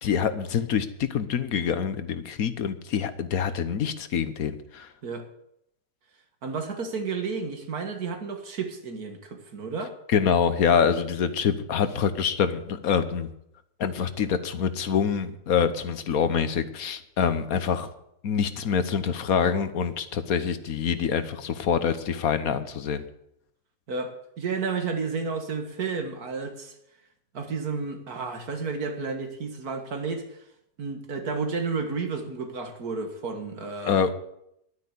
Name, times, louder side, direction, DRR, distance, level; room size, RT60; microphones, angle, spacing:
voice 1, 0.0-4.9 10.1-13.3 13.8-17.9 18.2-23.0 33.8-34.1, left 7 dB, 70° left, 1.4 m, -25 dB
voice 2, 6.4-10.0 23.9-26.7 27.3-30.4 30.8-34.1, right 4 dB, 75° right, 2.2 m, -32 dB
11.5 x 9.7 x 8.3 m
omnidirectional pair, 1.6 m